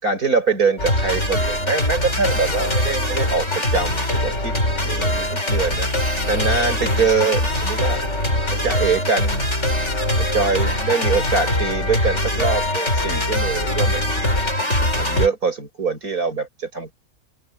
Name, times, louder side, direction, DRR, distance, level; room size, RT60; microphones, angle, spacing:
voice 1, 0.0-4.6 4.8-5.9 6.3-8.0 8.5-9.4 10.2-14.1 15.0-16.9, right 5 dB, 60° right, 6.2 m, -23 dB
sound 1, 0.8-15.3, left 1 dB, 45° left, 8.4 m, -22 dB
open air
omnidirectional pair, 1.7 m